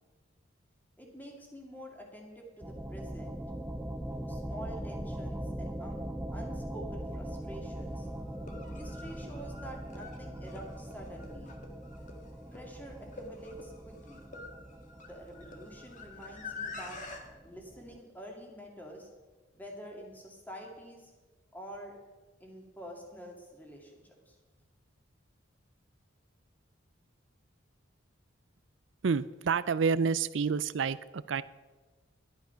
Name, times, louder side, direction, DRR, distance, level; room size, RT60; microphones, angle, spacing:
voice 1, 1.0-3.4 4.1-8.1 8.7-11.5 12.5-14.2 15.0-17.0 17.4-19.1 19.5-21.1 21.5-22.0 22.4-24.4, equal, 10° left, 0 dB, 2.1 m, -47 dB
sound 1, 2.6-18.0, right 1 dB, 10° right, 0.4 m, -41 dB
sound 2, 7.2-7.3 8.3-17.2, left 4 dB, 40° left, 1.6 m, -47 dB
voice 2, 29.0-31.4, right 5 dB, 70° right, 16 dB, 0.5 m, -29 dB
12.0 x 11.5 x 5.7 m, 1.3 s
head